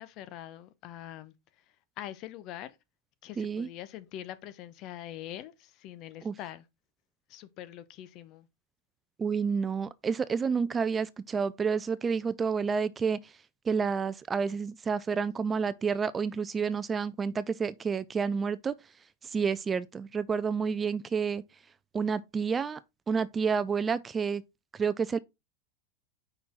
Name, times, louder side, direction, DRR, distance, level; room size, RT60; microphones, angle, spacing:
voice 1, 0.0-1.3 2.0-2.8 3.2-6.6 7.3-8.5, left 12 dB, 45° left, 0.8 m, -43 dB
voice 2, 3.4-3.7 6.2-6.3 9.2-13.2 13.7-18.7 19.3-21.4 21.9-22.8 23.1-24.4 24.8-25.2, right 5 dB, 20° right, 0.4 m, -29 dB
5.4 x 4.3 x 4.3 m
hypercardioid pair, 100°, 0 cm